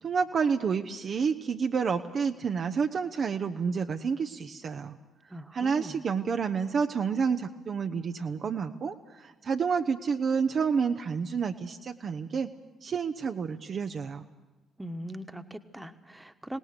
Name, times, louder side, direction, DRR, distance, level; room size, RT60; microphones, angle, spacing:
voice 1, 0.0-5.0 5.5-12.5 12.8-14.2, right 6 dB, 45° right, 6 dB, 0.7 m, -29 dB
voice 2, 5.3-6.0 14.8-16.6, equal, 10° right, 8 dB, 1.3 m, -40 dB
25.0 x 18.5 x 6.6 m, 1.1 s
figure-of-eight pair, 45°, 0 cm